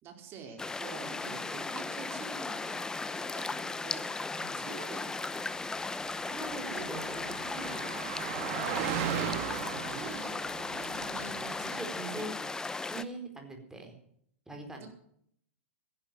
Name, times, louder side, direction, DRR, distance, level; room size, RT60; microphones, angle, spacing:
voice 1, 0.0-4.1 4.6-5.5 6.6-7.1 8.6-11.8 12.2-12.3 14.8-14.9, right 5 dB, 35° right, 3 dB, 4.5 m, -46 dB
sound 1, 0.6-13.0, left 3 dB, 10° left, 0.8 m, -36 dB
voice 2, 4.3-4.6 6.2-7.0 7.3-7.9 8.3-10.2 11.1-12.3 12.9-14.0 14.5-14.9, right 2 dB, 5° right, 3 dB, 4.4 m, -43 dB
Car passing by, 5.8-11.8, right 9 dB, 50° right, 2.2 m, -38 dB
15.5 x 11.0 x 7.7 m, 0.68 s
hypercardioid pair, 110°, 7 cm